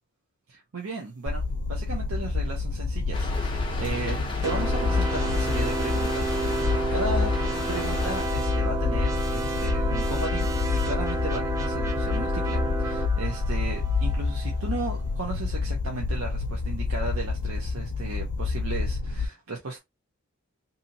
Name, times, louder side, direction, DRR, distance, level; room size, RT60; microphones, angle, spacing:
voice 1, 0.5-7.3 7.7-19.8, right 3 dB, 80° right, 0.7 m, -35 dB
sound 1, 1.3-19.3, left 4 dB, 90° left, 0.5 m, -28 dB
Rain, 3.1-8.2, left 2 dB, 20° left, 0.7 m, -34 dB
sound 2, 4.4-14.9, right 2 dB, 15° right, 0.4 m, -31 dB
2.7 x 2.7 x 2.7 m
head